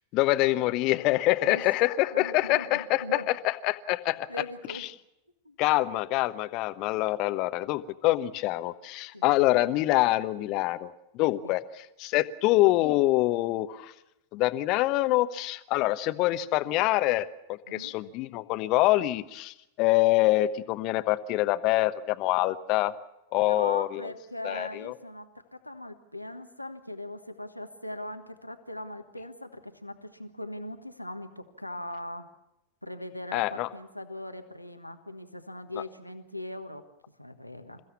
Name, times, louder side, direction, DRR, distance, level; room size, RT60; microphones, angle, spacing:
voice 1, 0.1-4.3 4.8-4.9 5.6-11.6 12.0-13.9 14.3-22.9 23.3-24.1 24.4-24.9 33.3-33.7, left 17 dB, 40° left, 13 dB, 1.1 m, -25 dB
voice 2, 2.1-3.3 4.3-4.9 5.4-5.5 9.1-9.3 11.4-11.5 17.7-17.9 23.4-32.3 32.8-36.8 37.2-37.8, left 1 dB, 90° left, 6 dB, 1.4 m, -40 dB
28.5 x 15.5 x 7.2 m, 0.89 s
figure-of-eight pair, 90°, 0 cm